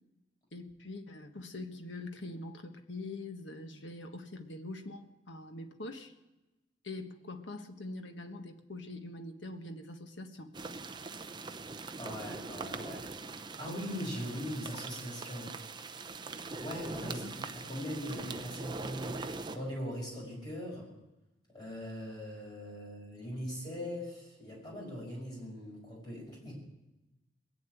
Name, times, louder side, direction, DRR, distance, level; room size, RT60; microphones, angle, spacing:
voice 1, 0.5-6.1 6.8-10.5 17.0-17.4, left 2 dB, 70° left, 6 dB, 1.4 m, -44 dB
sound 1, 10.5-19.6, right 3 dB, 25° right, 0.7 m, -42 dB
voice 2, 12.0-13.1 13.6-15.5 16.6-17.2 17.6-20.9 21.5-26.5, equal, 20° left, -3 dB, 6.1 m, -40 dB
20.5 x 7.4 x 9.2 m, 1.0 s
head